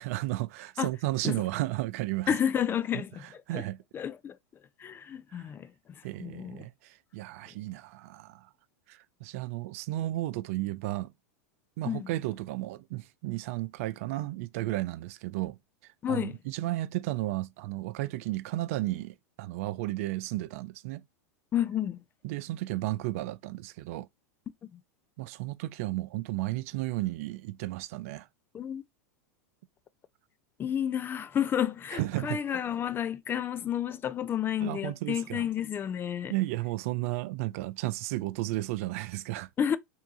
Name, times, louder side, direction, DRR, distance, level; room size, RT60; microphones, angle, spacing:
voice 1, 0.0-2.3 2.9-3.0 3.5-3.8 5.3-5.4 6.0-8.5 8.9-11.1 11.8-15.6 15.8-21.0 22.2-24.1 25.2-28.3 31.9-32.4 34.6-35.4 36.3-39.5, right 17 dB, 60° right, 0.4 m, -33 dB
voice 2, 2.3-3.6 3.9-4.4 4.8-5.7 6.2-6.7 11.8-12.1 16.0-16.4 21.5-22.0 24.7-24.8 28.5-28.8 30.6-36.3 39.6-39.8, left 9 dB, 25° left, 0.4 m, -31 dB
3.4 x 2.8 x 3.9 m
hypercardioid pair, 100°, 9 cm